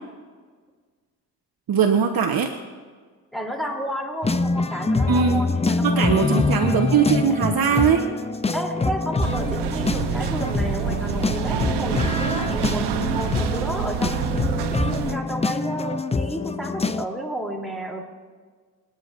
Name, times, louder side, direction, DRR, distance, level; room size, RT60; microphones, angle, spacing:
voice 1, 1.7-2.5 5.1-5.4 5.8-8.1, right 6 dB, 60° right, 4 dB, 1.2 m, -20 dB
voice 2, 3.3-6.6 8.5-18.0, equal, ahead, 0 dB, 3.3 m, -32 dB
sound 1, 4.2-17.0, left 3 dB, 15° left, 0.6 m, -25 dB
sound 2, 9.2-15.1, right 9 dB, 75° right, 0.9 m, -27 dB
24.5 x 10.0 x 2.6 m, 1.6 s
supercardioid pair, 60°, 41 cm